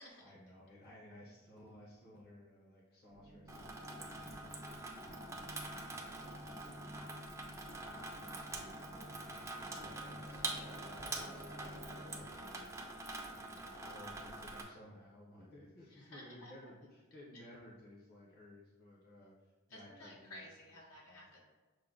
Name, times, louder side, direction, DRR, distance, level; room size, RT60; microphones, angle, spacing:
voice 1, 0.2-7.1 7.6-13.0 13.3-20.5 21.0-21.2, left 1 dB, 45° left, -5 dB, 0.9 m, -58 dB
sound 1, 3.1-12.3, equal, 65° right, 0.7 m, -53 dB
Water tap faucet / Sink (filling or washing), 3.5-14.6, right 2 dB, 15° right, 0.4 m, -45 dB
voice 2, 15.9-16.5 17.3-17.4 19.7-21.4, left 1 dB, 80° left, -3 dB, 1.3 m, -54 dB
6.4 x 2.2 x 3.7 m, 1.3 s
head